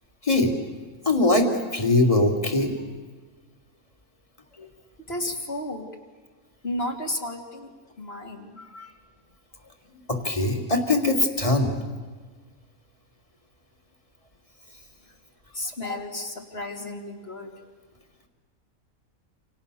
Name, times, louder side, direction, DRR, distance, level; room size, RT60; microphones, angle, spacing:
voice 1, 1.0-2.7 10.1-11.7, left 2 dB, 25° left, 3 dB, 3.1 m, -21 dB
voice 2, 5.1-5.9 6.6-7.7 8.0-8.9 15.5-17.5, left 1 dB, 45° left, 2 dB, 3.3 m, -33 dB
28.5 x 27.5 x 7.0 m, 1.4 s
omnidirectional pair, 1.5 m